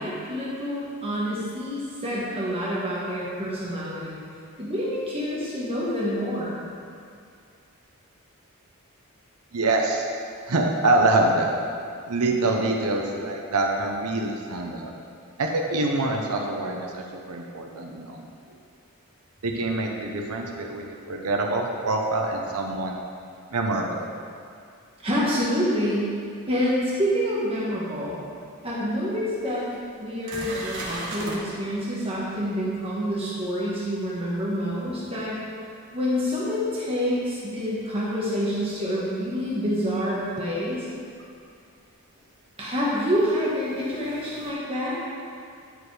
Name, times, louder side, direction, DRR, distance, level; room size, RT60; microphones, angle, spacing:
voice 1, 0.0-4.2 4.6-6.6 25.0-26.1 26.5-28.2 28.6-29.7 30.0-35.4 35.9-40.9 42.6-45.0, equal, 25° right, -7 dB, 1.4 m, -27 dB
voice 2, 9.5-10.1 10.5-11.5 12.1-14.9 15.4-18.3 19.4-23.0 23.5-24.1, right 2 dB, 80° right, 1 dB, 0.8 m, -25 dB
sound 1, 29.1-29.2 29.7-29.8 30.3-31.4 36.5-36.6 39.4-39.5 41.2-41.3 42.7-44.5, right 2 dB, 55° right, 1.3 m, -38 dB
10.0 x 4.8 x 4.9 m, 2.3 s
head